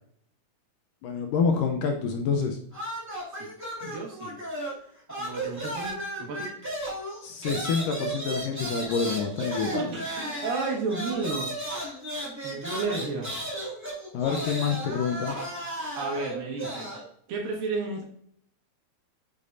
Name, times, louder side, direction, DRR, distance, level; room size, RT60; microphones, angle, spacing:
voice 1, 1.0-2.6 3.8-3.9 7.2-9.9 14.1-15.4, left 5 dB, 75° left, 4 dB, 2.1 m, -27 dB
sound 1, 2.7-4.8 5.1-17.0, right 1 dB, 5° right, 1.7 m, -34 dB
voice 2, 3.8-4.3 5.2-6.5 9.7-11.5 12.4-13.3 16.0-16.9 17.3-18.0, right 4 dB, 70° right, -1 dB, 3.2 m, -32 dB
8.2 x 6.8 x 2.7 m, 0.66 s
omnidirectional pair, 4.3 m